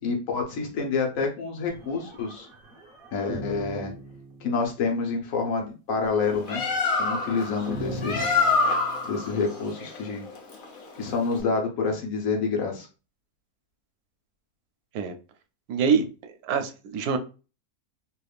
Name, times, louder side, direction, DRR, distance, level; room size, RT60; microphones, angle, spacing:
voice 1, 0.0-2.5 3.1-3.9 4.4-6.6 7.0-8.3 9.0-10.2 11.0-12.9, left 4 dB, 70° left, 1.2 m, -28 dB
sound 1, 1.7-4.9 6.0-9.3, right 1 dB, 45° right, 0.9 m, -41 dB
Bird, 6.2-11.4, left 4 dB, 45° left, 0.7 m, -27 dB
voice 2, 15.7-17.2, right 6 dB, 80° right, 1.1 m, -25 dB
3.3 x 3.0 x 2.3 m
omnidirectional pair, 1.6 m